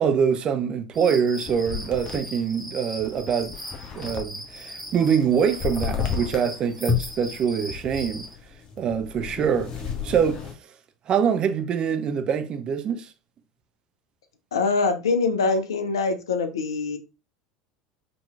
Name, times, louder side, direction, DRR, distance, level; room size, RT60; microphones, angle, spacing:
voice 1, 0.0-3.6 3.9-8.3 8.8-9.7 10.0-10.5 11.1-13.1, right 7 dB, 35° right, 0.5 m, -24 dB
sound 1, 0.9-8.3, equal, ahead, 0.8 m, -40 dB
sound 2, 1.5-4.6 4.9-6.5 6.9-10.5, left 7 dB, 35° left, 0.8 m, -32 dB
voice 2, 14.5-17.0, left 4 dB, 70° left, 0.5 m, -24 dB
5.2 x 2.9 x 2.3 m
figure-of-eight pair, 70°, 3 cm